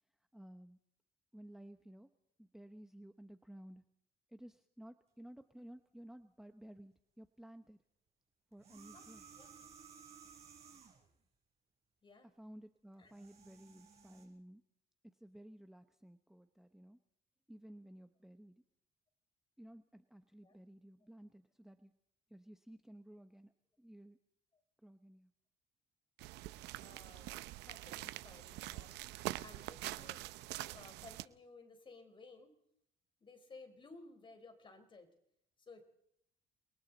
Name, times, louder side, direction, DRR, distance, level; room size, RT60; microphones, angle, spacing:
voice 1, 0.3-0.8 1.3-2.1 2.4-3.9 4.3-7.8 8.5-9.2 12.2-14.6 15.0-17.0 17.5-18.6 19.6-21.9 22.3-24.2 24.8-25.3, right 1 dB, ahead, 8 dB, 0.9 m, -55 dB
sound 1, 8.5-11.1 12.9-14.2, right 6 dB, 40° right, 5.9 m, -58 dB
sound 2, 26.2-31.3, right 17 dB, 90° right, 0.7 m, -45 dB
voice 2, 26.8-30.3 30.7-32.5 33.2-35.1 35.6-35.8, left 3 dB, 30° left, 7 dB, 4.1 m, -57 dB
29.0 x 22.0 x 4.1 m, 0.74 s
cardioid pair, 110°, 17 cm